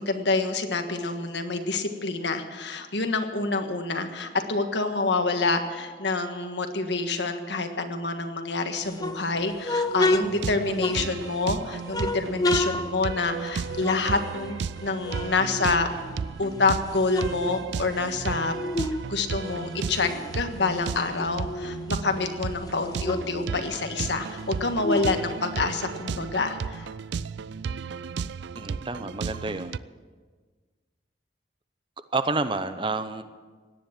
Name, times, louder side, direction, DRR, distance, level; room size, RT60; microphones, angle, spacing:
voice 1, 0.0-15.9 16.4-18.5 19.1-26.9, left 3 dB, 75° left, 6 dB, 1.5 m, -27 dB
sound 1, 8.8-11.4 11.9-14.8 15.0-16.4 16.8-19.0 19.3-21.9 22.3-22.4 22.6-26.0, left 2 dB, 20° left, 0.6 m, -31 dB
sound 2, 10.2-29.8, right 5 dB, 70° right, 0.4 m, -34 dB
voice 2, 28.6-29.8 32.1-33.2, right 3 dB, 25° right, 11 dB, 0.7 m, -29 dB
17.5 x 10.5 x 7.5 m, 1.4 s
head